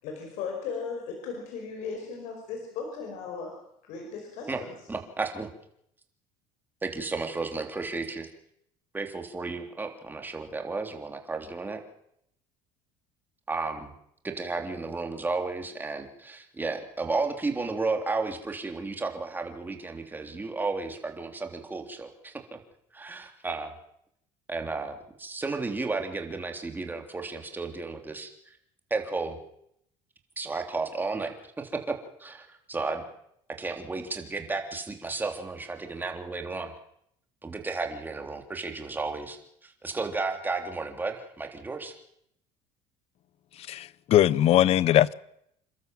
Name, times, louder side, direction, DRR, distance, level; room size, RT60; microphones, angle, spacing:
voice 1, 0.0-3.5 3.9-4.7, left 5 dB, 75° left, 5.4 m, -36 dB
voice 2, 4.9-5.5 6.8-8.3 8.9-11.8 13.5-13.9 14.2-22.6 22.9-23.7 24.5-28.6 28.9-29.4 30.4-33.0 33.6-36.7 37.4-42.0, right 3 dB, 15° right, 3.3 m, -33 dB
voice 3, 43.7-45.1, left 12 dB, 55° left, 0.8 m, -21 dB
28.5 x 12.5 x 7.7 m
cardioid pair, 120°, 13 cm